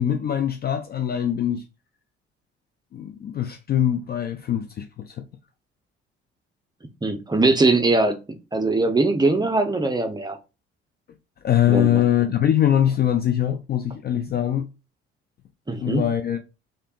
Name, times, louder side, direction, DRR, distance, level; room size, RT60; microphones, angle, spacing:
voice 1, 0.0-1.6 2.9-5.3 11.4-14.7 15.8-16.4, left 10 dB, 30° left, 0.4 m, -22 dB
voice 2, 7.0-8.2 8.5-10.4 11.7-12.0 15.7-16.0, right 2 dB, 15° right, 0.6 m, -21 dB
3.3 x 2.7 x 2.4 m
figure-of-eight pair, 45°, 33 cm